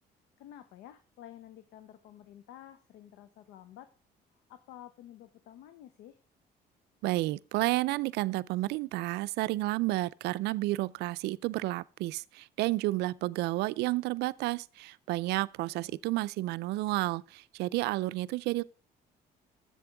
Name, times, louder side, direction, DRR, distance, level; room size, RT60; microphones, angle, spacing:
voice 1, 0.4-3.9 4.5-6.2 15.7-16.0, left 11 dB, 85° left, 0.8 m, -51 dB
voice 2, 7.0-18.6, right 18 dB, 85° right, 0.4 m, -31 dB
10.5 x 7.6 x 3.4 m
cardioid pair, 110°, 17 cm